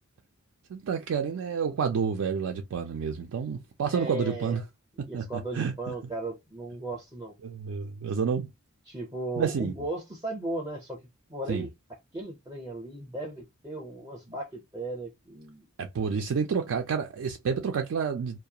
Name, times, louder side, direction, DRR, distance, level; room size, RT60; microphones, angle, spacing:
voice 1, 0.7-4.6 5.1-5.7 7.4-8.5 9.4-9.7 11.5-11.7 15.8-18.4, right 6 dB, 70° right, 0.4 m, -29 dB
voice 2, 3.9-4.6 5.0-7.3 8.9-11.0 11.3-11.7 12.1-15.7, right 2 dB, 15° right, 0.5 m, -36 dB
2.3 x 2.2 x 2.7 m
head